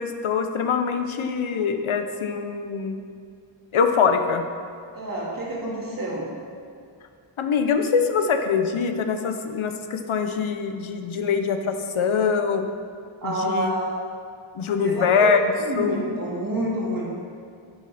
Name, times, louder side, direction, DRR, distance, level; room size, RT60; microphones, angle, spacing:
voice 1, 0.0-3.0 3.7-4.5 7.4-12.7 13.2-13.7 14.5-16.0, left 6 dB, 75° left, 7 dB, 0.9 m, -23 dB
voice 2, 4.9-6.3 13.2-13.9 14.8-15.3 15.6-17.1, right 1 dB, 45° right, -5 dB, 2.5 m, -28 dB
10.5 x 10.0 x 4.2 m, 2.3 s
wide cardioid pair, 170°, 48 cm